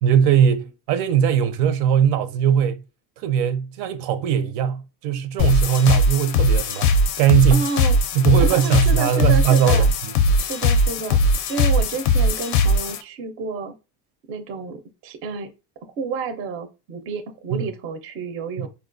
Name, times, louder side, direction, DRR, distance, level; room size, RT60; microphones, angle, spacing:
voice 1, 0.0-2.8 3.2-7.7 8.1-9.9 17.5-17.6 18.6-18.7, right 8 dB, 80° right, 0.6 m, -20 dB
sound 1, 5.4-13.0, left 1 dB, 45° left, 0.4 m, -19 dB
voice 2, 7.5-8.0 8.4-9.9 10.4-11.2 11.5-13.7 14.3-15.5 16.0-18.7, right 4 dB, 35° right, 0.4 m, -30 dB
4.2 x 2.2 x 2.4 m
cardioid pair, 155°, 40 cm